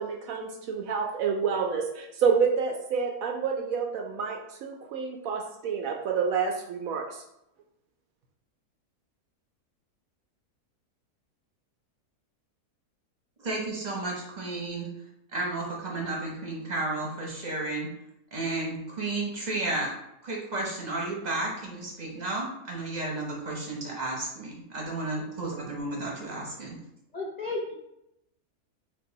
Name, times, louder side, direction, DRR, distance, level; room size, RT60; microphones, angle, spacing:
voice 1, 0.0-7.2, right 6 dB, 70° right, 2 dB, 0.9 m, -28 dB
voice 2, 13.4-14.9 15.3-17.9 18.3-19.9 20.2-26.8, right 2 dB, 30° right, -2 dB, 0.9 m, -32 dB
voice 3, 27.1-27.7, left 2 dB, 60° left, -3 dB, 0.4 m, -33 dB
4.5 x 2.6 x 3.9 m, 0.83 s
omnidirectional pair, 1.6 m